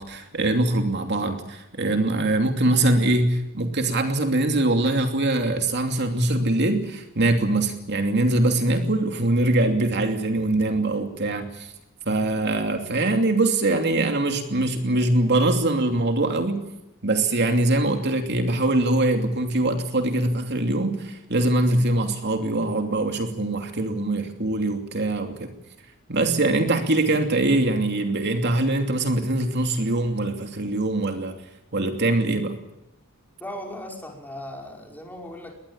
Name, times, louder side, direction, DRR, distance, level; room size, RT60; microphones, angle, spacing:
voice 1, 0.0-11.7 12.1-16.6 17.0-25.5 26.1-31.3 31.7-32.6, right 2 dB, 55° right, 5 dB, 2.8 m, -23 dB
voice 2, 33.4-35.6, left 1 dB, 10° left, 1 dB, 5.3 m, -37 dB
22.5 x 20.0 x 8.8 m, 0.88 s
head